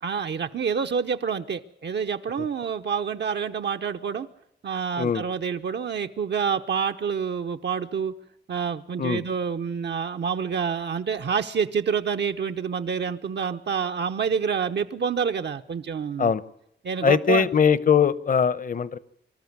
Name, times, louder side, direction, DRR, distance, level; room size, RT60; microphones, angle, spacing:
voice 1, 0.0-4.3 4.6-8.1 8.5-16.3 16.8-17.5, right 6 dB, 70° right, 6 dB, 0.9 m, -27 dB
voice 2, 17.0-19.0, left 7 dB, 50° left, 18 dB, 0.9 m, -21 dB
25.0 x 13.5 x 9.5 m, 0.75 s
wide cardioid pair, 160°, 19 cm